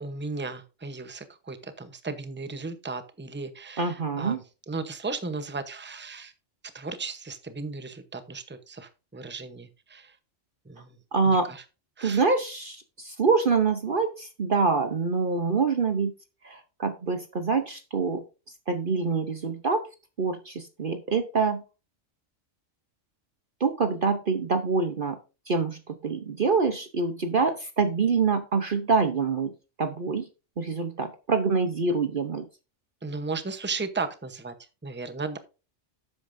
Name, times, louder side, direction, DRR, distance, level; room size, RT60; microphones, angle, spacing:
voice 1, 0.0-4.4 4.7-6.3 6.7-10.1 10.7-11.0 11.2-11.6 12.0-12.2 33.0-34.5 34.8-35.4, right 4 dB, 10° right, 10 dB, 0.8 m, -35 dB
voice 2, 3.8-4.4 11.1-11.5 12.0-16.1 16.4-18.2 18.7-19.8 20.2-21.6 23.6-25.2 25.5-29.5 29.8-30.3 30.6-32.5, right 4 dB, 50° right, 8 dB, 1.0 m, -25 dB
12.0 x 8.4 x 2.6 m, 0.31 s
omnidirectional pair, 1.3 m